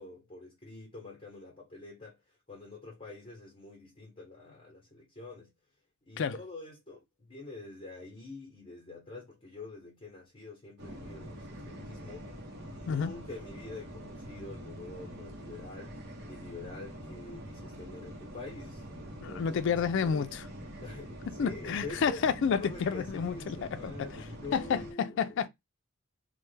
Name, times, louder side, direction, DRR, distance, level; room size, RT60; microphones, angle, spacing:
voice 1, 0.0-2.2 2.5-5.5 6.1-19.7 20.0-20.3 20.8-22.2 22.6-25.5, left 2 dB, 25° left, 0.9 m, -46 dB
sound 1, 10.8-24.9, equal, 50° right, 0.8 m, -45 dB
voice 2, 19.2-20.4 21.3-23.6 23.8-24.1 24.5-25.5, left 6 dB, 60° left, 0.3 m, -30 dB
3.2 x 2.1 x 3.2 m
head